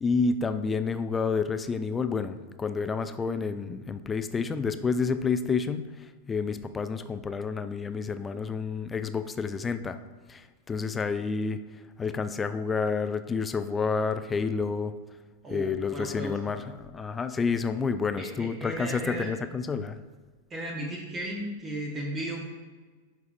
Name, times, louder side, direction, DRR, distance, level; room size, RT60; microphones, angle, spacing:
voice 1, 0.0-10.0 10.3-11.6 12.0-14.9 15.5-20.0, left 5 dB, 15° left, 10 dB, 0.4 m, -29 dB
voice 2, 15.4-16.4 18.2-19.3 20.5-22.4, right 1 dB, 25° right, 0 dB, 1.0 m, -35 dB
11.0 x 4.6 x 2.5 m, 1.4 s
figure-of-eight pair, 90°, 0 cm